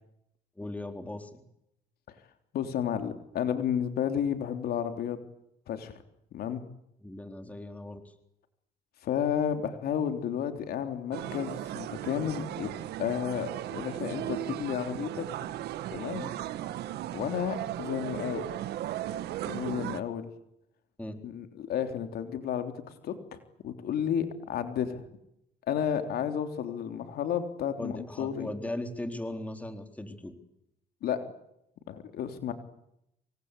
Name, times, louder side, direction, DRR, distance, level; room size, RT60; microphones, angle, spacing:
voice 1, 0.6-1.4 7.0-8.0 16.1-16.3 21.0-21.2 27.8-30.3, left 1 dB, 10° left, 7 dB, 3.9 m, -38 dB
voice 2, 2.5-5.2 5.7-6.0 6.3-6.6 9.0-12.7 13.0-15.5 15.9-16.2 17.1-18.5 19.4-20.3 21.2-25.0 25.7-28.5 31.0-31.2 31.9-32.5, left 9 dB, 65° left, 7 dB, 3.5 m, -32 dB
sound 1, 11.1-20.0, right 13 dB, 75° right, 1.7 m, -36 dB
27.5 x 26.0 x 8.4 m, 0.80 s
cardioid pair, 110°, 17 cm